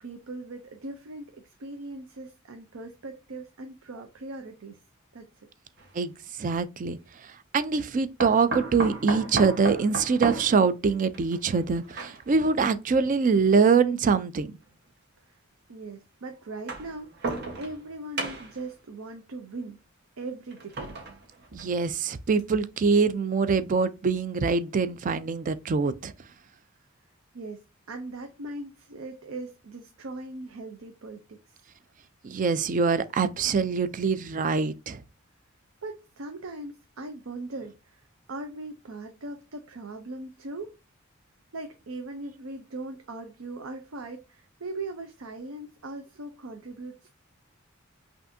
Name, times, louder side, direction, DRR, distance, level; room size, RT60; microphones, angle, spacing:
voice 1, 0.0-4.8 5.1-5.5 15.3-15.4 15.7-19.8 20.2-20.9 27.3-27.6 27.9-31.6 35.8-40.8 41.5-47.2, right 2 dB, 80° right, 0.6 m, -40 dB
sound 1, 5.8-5.9 8.2-12.5 13.4-13.5 14.7-14.8 16.5-17.9 18.2-18.7 20.5-21.9 22.4-22.5 22.9-23.0, right 3 dB, 55° right, 1.2 m, -34 dB
voice 2, 6.4-7.0 7.5-14.5 21.5-26.1 32.2-35.0, right 5 dB, 40° right, 0.4 m, -24 dB
5.7 x 2.6 x 2.6 m
head